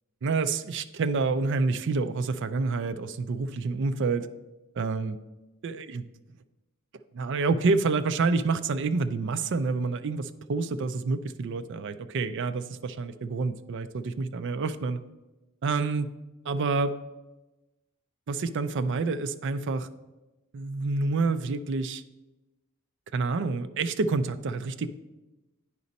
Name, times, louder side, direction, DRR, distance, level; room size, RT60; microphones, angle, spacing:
voice 1, 0.2-4.3 4.8-5.2 5.6-6.0 7.1-15.0 15.6-16.1 16.5-16.9 18.3-19.9 20.5-22.0 23.1-24.9, right 4 dB, 55° right, 11 dB, 0.4 m, -28 dB
9.5 x 5.1 x 4.1 m, 1.1 s
head